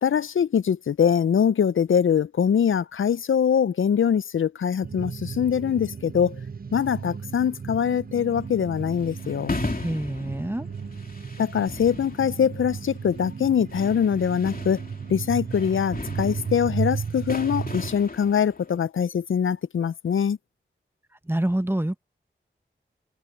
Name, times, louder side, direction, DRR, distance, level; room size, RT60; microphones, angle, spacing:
voice 1, 0.0-6.4 6.7-9.5 11.4-14.8 15.1-20.4, left 8 dB, 75° left, 0.4 m, -23 dB
sound 1, 4.8-18.0, right 6 dB, 45° right, 0.6 m, -34 dB
sound 2, 8.2-18.8, left 3 dB, 45° left, 2.9 m, -38 dB
voice 2, 9.8-10.7 21.2-22.0, right 1 dB, 10° right, 1.1 m, -26 dB
cardioid pair, 45°, 21 cm